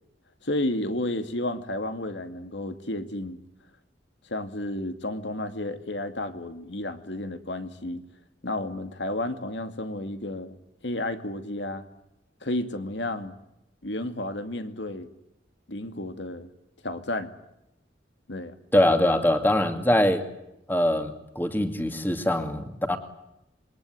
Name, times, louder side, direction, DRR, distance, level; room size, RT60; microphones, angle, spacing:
voice 1, 0.4-3.4 4.3-8.0 8.4-10.5 10.8-11.9 12.4-13.3 13.8-15.1 15.7-16.5 16.8-17.3 18.3-18.6, left 1 dB, 80° left, 9 dB, 2.5 m, -32 dB
voice 2, 18.7-20.2 20.7-23.0, left 1 dB, 10° left, 7 dB, 2.3 m, -23 dB
27.5 x 23.0 x 9.4 m, 0.87 s
head